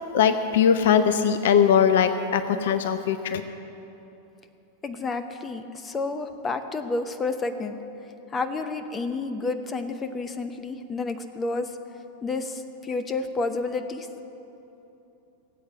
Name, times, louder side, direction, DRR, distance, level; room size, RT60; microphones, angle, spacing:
voice 1, 0.1-3.4, left 7 dB, 55° left, 10 dB, 0.7 m, -20 dB
voice 2, 4.8-7.8 8.3-11.7 12.2-14.1, left 3 dB, 20° left, 10 dB, 0.9 m, -30 dB
18.5 x 8.2 x 8.5 m, 3.0 s
figure-of-eight pair, 90°, 0 cm